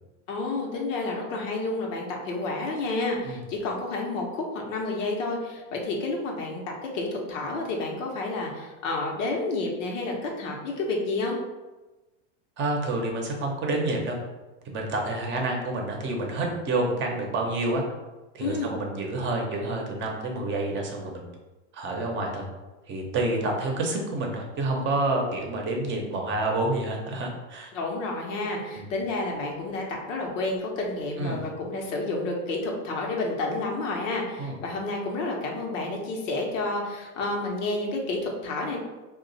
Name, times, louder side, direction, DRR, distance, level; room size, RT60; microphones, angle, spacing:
voice 1, 0.3-11.4 18.4-18.7 27.7-38.8, left 2 dB, 90° left, 0 dB, 1.0 m, -30 dB
voice 2, 12.6-14.2 14.6-17.8 18.3-21.3 21.7-22.4 22.9-27.7 28.8-28.9 31.2-31.4 34.4-34.5, right 2 dB, 30° right, 1 dB, 0.7 m, -28 dB
2.9 x 2.4 x 3.9 m, 1.1 s
supercardioid pair, 130°, 37 cm